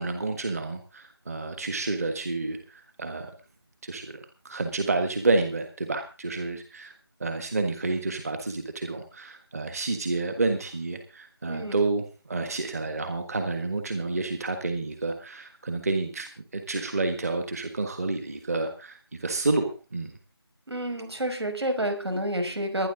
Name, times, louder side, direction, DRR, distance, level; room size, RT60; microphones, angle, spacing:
voice 1, 0.0-3.3 3.8-4.2 4.4-6.9 7.2-20.1, right 3 dB, 35° right, 7 dB, 1.6 m, -29 dB
voice 2, 11.5-11.8 20.7-22.9, right 1 dB, 80° right, 6 dB, 5.7 m, -29 dB
22.0 x 10.0 x 3.9 m, 0.34 s
figure-of-eight pair, 170°, 13 cm